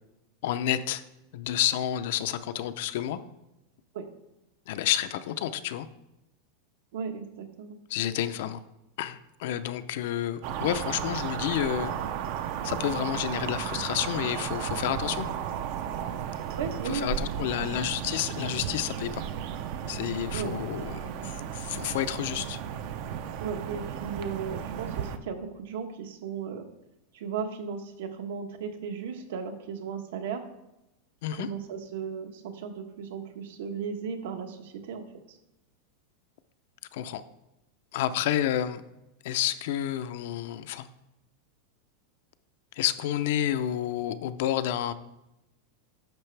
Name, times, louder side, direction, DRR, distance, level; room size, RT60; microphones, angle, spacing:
voice 1, 0.4-1.0 1.3-3.2 4.7-5.9 7.9-8.6 9.0-12.0 12.6-15.3 16.9-19.2 19.9-22.6 31.2-31.5 36.9-37.2 37.9-38.8 39.2-40.9 42.7-44.9, left 11 dB, 60° left, 12 dB, 0.5 m, -30 dB
voice 2, 6.9-7.8 16.6-17.1 17.5-17.9 20.3-20.5 23.4-26.7 27.1-30.5 31.3-35.4, right 6 dB, 75° right, 6 dB, 1.2 m, -36 dB
sound 1, 10.4-25.2, right 9 dB, 45° right, 0.5 m, -34 dB
10.5 x 6.8 x 3.3 m, 0.91 s
supercardioid pair, 170°, 0 cm